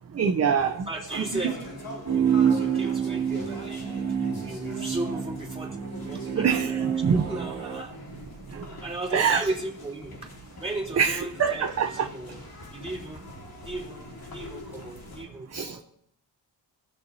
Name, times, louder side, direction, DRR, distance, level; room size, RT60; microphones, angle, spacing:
voice 1, 0.1-0.9 6.4-6.7 7.0-7.2 8.5-8.8 9.1-9.4 11.0-12.1 15.5-15.8, right 6 dB, 35° right, 0.6 m, -24 dB
sound 1, 0.6-15.3, left 2 dB, 50° left, 2.7 m, -44 dB
voice 2, 0.7-6.8 7.1-7.9 8.8-10.3 10.6-12.4 12.7-13.2 13.6-15.8, right 2 dB, 15° right, 3.2 m, -36 dB
sound 2, 2.1-7.8, right 7 dB, 65° right, 2.3 m, -28 dB
17.0 x 6.8 x 2.7 m
cardioid pair, 85°, 44 cm